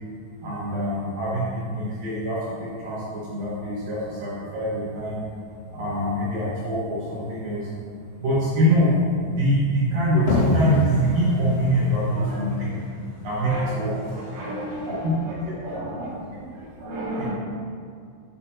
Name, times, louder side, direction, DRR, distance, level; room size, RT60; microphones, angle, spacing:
voice 1, 0.4-5.2 5.7-7.7 8.2-8.9 9.3-12.8 13.2-14.1 14.8-15.2 15.5-16.0 17.2-17.3, equal, 60° right, -9 dB, 2.7 m, -24 dB
sound 1, 10.3-15.7, left 2 dB, 85° left, 4.4 m, -29 dB
voice 2, 13.4-13.7 14.3-14.9 15.6-16.1 16.4-16.5 16.8-17.3, right 1 dB, 75° right, -9 dB, 4.0 m, -32 dB
9.5 x 7.6 x 2.9 m, 2.2 s
omnidirectional pair, 5.6 m